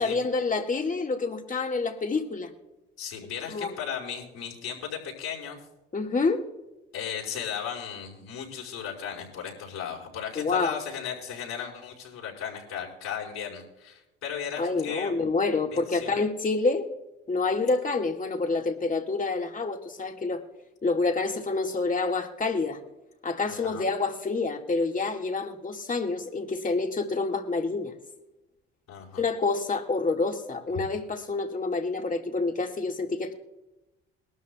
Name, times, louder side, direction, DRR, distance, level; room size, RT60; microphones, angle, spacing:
voice 1, 0.0-2.5 3.5-3.7 5.9-6.4 10.4-10.7 14.6-16.9 17.3-20.4 20.8-22.8 23.2-27.9 29.2-33.3, left 3 dB, 25° left, 4 dB, 2.0 m, -27 dB
voice 2, 3.0-5.6 6.9-15.1 15.7-16.1 23.4-23.8 28.9-29.2, left 7 dB, 65° left, -3 dB, 5.3 m, -36 dB
22.0 x 12.5 x 2.3 m, 1.0 s
hypercardioid pair, 55°, 29 cm